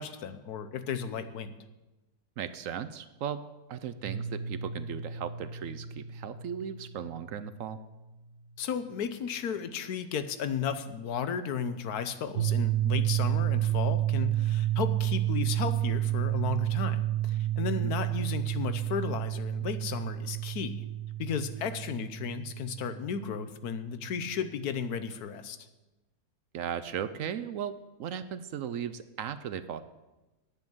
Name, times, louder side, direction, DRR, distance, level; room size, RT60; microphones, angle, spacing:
voice 1, 0.0-1.5 8.6-20.9 21.2-25.6, left 7 dB, 80° left, 11 dB, 1.4 m, -34 dB
voice 2, 2.4-3.4 3.7-7.8 17.8-17.9 26.5-29.8, right 8 dB, 65° right, 12 dB, 0.9 m, -37 dB
Piano, 4.0-9.7, right 2 dB, 40° right, 1.0 m, -42 dB
sound 1, 12.4-24.2, right 14 dB, 90° right, 1.3 m, -30 dB
11.0 x 9.0 x 7.8 m, 1.1 s
omnidirectional pair, 1.6 m